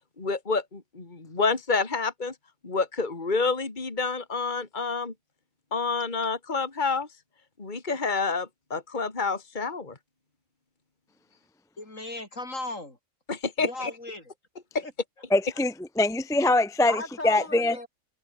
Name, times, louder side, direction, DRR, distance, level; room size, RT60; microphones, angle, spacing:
voice 1, 0.2-2.3 2.6-5.1 5.7-7.1 7.6-10.0 13.3-13.9 14.7-14.8, left 4 dB, 30° left, 2.7 m, -28 dB
voice 2, 11.8-13.0 13.6-14.3 14.8-14.9 16.9-17.9, left 2 dB, 60° left, 6.1 m, -36 dB
voice 3, 15.3-17.8, left 2 dB, 5° left, 0.6 m, -23 dB
omnidirectional pair, 1.5 m